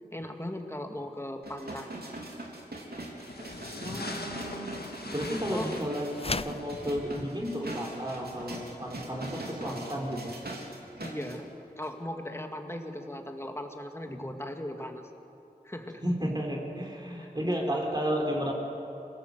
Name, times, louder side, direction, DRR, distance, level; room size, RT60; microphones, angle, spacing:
voice 1, 0.1-2.0 5.5-5.7 11.0-15.1 15.6-16.0 17.2-17.3, left 1 dB, 15° left, 4 dB, 2.2 m, -38 dB
sound 1, 1.4-11.4 11.8-11.9, right 1 dB, 75° right, 3.4 m, -42 dB
sound 2, 3.2-9.2, left 2 dB, 80° left, 1.8 m, -43 dB
voice 2, 3.8-4.7 5.1-10.3 14.0-14.3 16.0-18.5, equal, 25° right, 0 dB, 4.0 m, -32 dB
sound 3, 6.1-6.7, left 3 dB, 35° left, 0.5 m, -32 dB
27.0 x 17.5 x 8.0 m, 2.8 s
wide cardioid pair, 50°, 16 cm